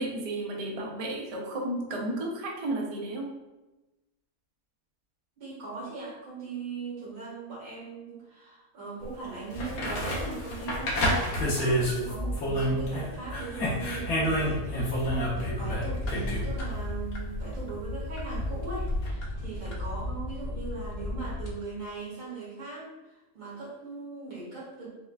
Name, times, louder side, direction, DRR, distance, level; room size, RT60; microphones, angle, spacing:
voice 1, 0.0-3.3, right 1 dB, 60° right, -1 dB, 0.4 m, -33 dB
voice 2, 5.4-24.9, right 4 dB, 80° right, -6 dB, 2.1 m, -39 dB
sound 1, 9.0-9.1 9.5-13.1 13.3-16.5 19.0-19.1, equal, 70° left, 1.4 m, -29 dB
sound 2, 12.1-21.5, left 1 dB, 55° left, 0.7 m, -35 dB
6.4 x 2.3 x 2.4 m, 1.0 s
omnidirectional pair, 1.6 m